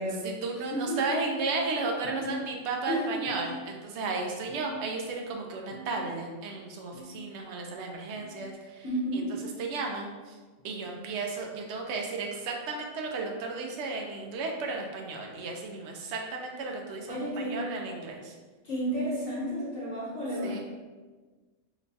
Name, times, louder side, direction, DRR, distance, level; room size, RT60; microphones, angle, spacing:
voice 1, 0.2-8.8 9.1-10.4 10.6-18.3 20.4-20.6, right 3 dB, 70° right, 1 dB, 0.9 m, -34 dB
sound 1, 2.0-2.9 3.3-4.1 4.5-5.1 5.7-6.3 6.9-7.3 8.1-8.4 9.4-9.6 10.6-10.8 11.8-12.0 13.0-13.2 14.2-14.4 15.5-15.6 16.7-16.8, right 1 dB, 85° left, 1.0 m, -44 dB
voice 2, 2.9-3.2 8.8-9.3 17.1-17.6 18.6-20.6, equal, 40° left, -7 dB, 1.1 m, -31 dB
3.0 x 2.2 x 3.9 m, 1.3 s
omnidirectional pair, 1.3 m